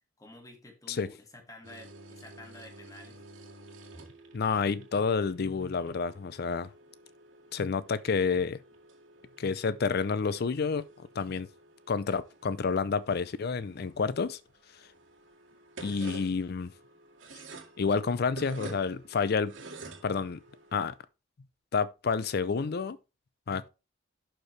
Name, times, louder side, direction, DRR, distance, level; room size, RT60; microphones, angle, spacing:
voice 1, 0.2-3.2, left 1 dB, 20° left, 1.8 m, -50 dB
sound 1, 1.6-20.8, right 2 dB, 85° right, 2.2 m, -50 dB
voice 2, 4.3-6.7 7.5-8.6 9.4-10.9 11.2-11.5 11.9-14.4 15.8-16.7 17.8-19.6 20.0-20.4 20.7-20.9 21.7-23.0 23.5-23.7, left 5 dB, 55° left, 0.5 m, -29 dB
11.5 x 4.5 x 3.3 m
head